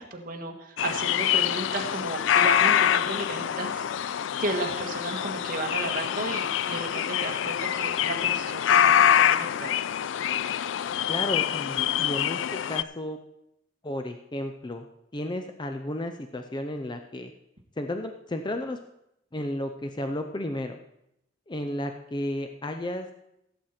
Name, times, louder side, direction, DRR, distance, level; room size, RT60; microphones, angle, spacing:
voice 1, 0.0-9.7, right 2 dB, 50° right, 3 dB, 1.7 m, -34 dB
sound 1, 0.8-12.8, left 9 dB, 85° left, 0.4 m, -25 dB
voice 2, 11.1-13.2 13.8-14.9 15.1-17.3 17.8-18.8 19.3-20.8 21.5-23.1, left 1 dB, 25° left, 6 dB, 0.6 m, -33 dB
16.5 x 7.9 x 4.4 m, 0.82 s
head